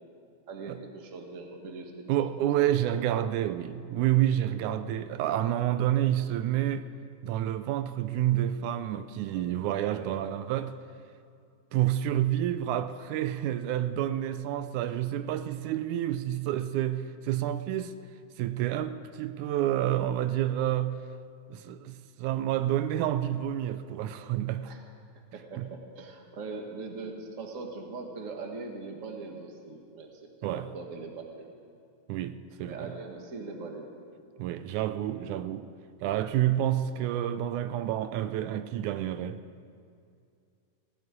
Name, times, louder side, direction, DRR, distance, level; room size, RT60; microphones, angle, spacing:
voice 1, 0.5-2.0 2.5-2.8 9.3-9.4 9.8-10.3 24.6-24.8 25.1-31.5 32.6-33.9, right 3 dB, 35° right, 1.3 m, -41 dB
voice 2, 2.1-6.9 7.2-10.7 11.7-18.0 18.4-21.0 21.5-24.7 25.6-25.7 30.4-30.7 32.1-32.9 34.4-35.7 36.0-39.4, right 12 dB, 80° right, 2.0 m, -29 dB
17.0 x 8.5 x 9.6 m
omnidirectional pair, 3.5 m